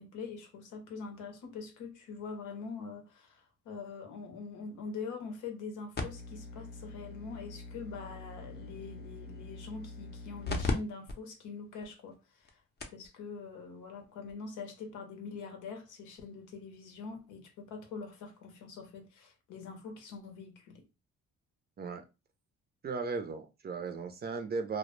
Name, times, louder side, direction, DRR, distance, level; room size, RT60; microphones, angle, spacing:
voice 1, 0.0-12.6 12.9-20.8, left 4 dB, 85° left, 0.8 m, -44 dB
sound 1, 6.0-10.7 11.1-11.2 11.8-11.9 12.5-12.6 12.8-13.1 14.3-14.4, left 3 dB, 35° left, 0.6 m, -39 dB
voice 2, 22.8-24.8, right 4 dB, 35° right, 0.5 m, -36 dB
2.1 x 2.1 x 3.0 m
cardioid pair, 90°, 30 cm